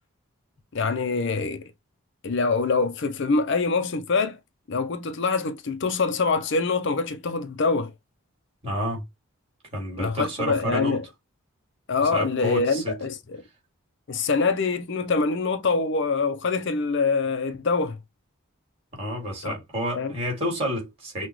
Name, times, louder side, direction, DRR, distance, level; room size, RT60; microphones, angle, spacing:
voice 1, 0.7-1.7 2.2-4.4 4.7-7.9 10.0-11.1 11.9-13.4 14.1-18.0 19.4-19.5 19.9-20.1, left 4 dB, 55° left, 0.5 m, -25 dB
voice 2, 8.6-9.0 9.7-11.0 12.0-13.0 18.9-21.3, equal, 25° right, 2.5 m, -29 dB
5.8 x 2.3 x 3.1 m
head